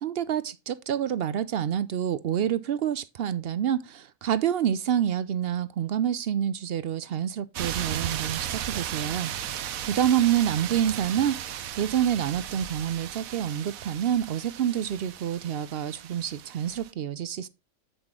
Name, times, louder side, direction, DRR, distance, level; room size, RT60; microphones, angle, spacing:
voice 1, 0.0-9.3 9.8-11.4 11.8-17.5, right 10 dB, 60° right, 0.7 m, -27 dB
sound 1, 7.5-16.9, right 10 dB, 90° right, 1.2 m, -36 dB
8.0 x 7.9 x 3.6 m
omnidirectional pair, 1.4 m